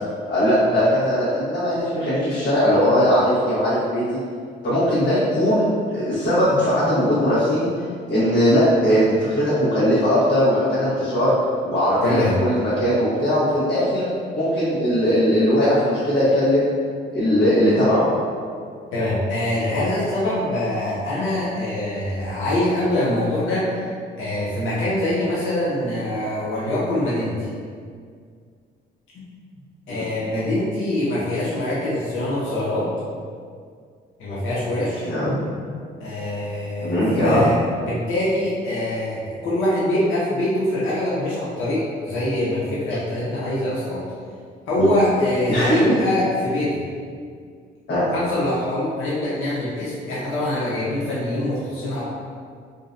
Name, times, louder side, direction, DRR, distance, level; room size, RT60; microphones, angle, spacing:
voice 1, 0.3-4.2 4.6-7.7 8.1-11.3 11.6-14.1 14.3-16.7 17.1-18.0 29.9-30.1 35.0-35.4 36.8-37.4 44.8-44.9 45.5-45.9 47.9-48.0, equal, 55° left, -13 dB, 0.9 m, -19 dB
voice 2, 12.0-12.4 18.9-23.8 24.2-27.4 29.1-29.3 29.9-32.9 34.2-35.1 36.0-44.0 44.7-46.8 48.1-52.0, left 1 dB, 85° left, -8 dB, 0.6 m, -24 dB
2.5 x 2.0 x 2.4 m, 2.1 s
cardioid pair, 90°, 20 cm